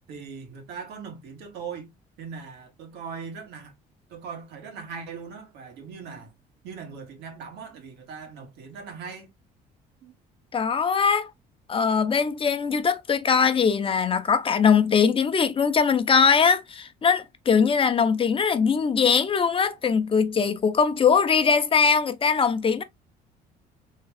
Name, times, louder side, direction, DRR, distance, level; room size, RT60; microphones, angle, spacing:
voice 1, 0.1-1.9 2.2-3.7 4.1-6.3 6.6-9.3 10.0-10.2, right 5 dB, 85° right, 1.9 m, -40 dB
voice 2, 10.5-11.3 11.7-22.8, left 6 dB, 30° left, 0.7 m, -21 dB
3.7 x 3.6 x 3.4 m
cardioid pair, 110°, 17 cm